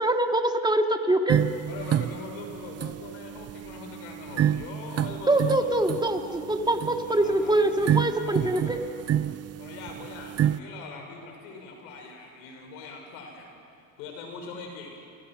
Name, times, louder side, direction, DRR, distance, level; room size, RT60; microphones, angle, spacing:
voice 1, 0.0-1.4 5.3-8.8, right 1 dB, 10° right, 4 dB, 2.7 m, -24 dB
sound 1, 1.3-10.6, right 10 dB, 40° right, 0.7 m, -29 dB
voice 2, 1.6-5.7 7.0-8.8 9.6-13.5 14.0-15.1, left 4 dB, 85° left, 2 dB, 5.8 m, -42 dB
29.5 x 24.5 x 6.2 m, 2.7 s
supercardioid pair, 75°, 40 cm